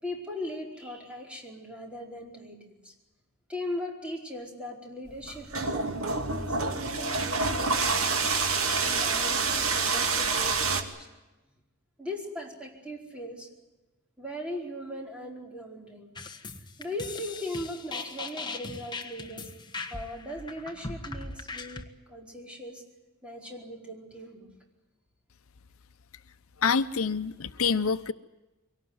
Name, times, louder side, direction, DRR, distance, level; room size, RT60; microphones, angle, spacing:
voice 1, 0.0-2.9 3.5-6.2 6.5-8.3 8.8-11.1 12.0-13.5 14.2-16.1 16.8-19.5 19.9-22.8 23.2-24.5, left 1 dB, 5° right, 0 dB, 4.8 m, -39 dB
sound 1, 5.1-10.8, right 4 dB, 85° right, 2.5 m, -27 dB
sound 2, 16.2-21.8, left 3 dB, 20° left, 1.6 m, -39 dB
voice 2, 26.6-28.1, left 5 dB, 80° left, 12 dB, 0.8 m, -26 dB
24.0 x 18.0 x 9.6 m, 1.1 s
head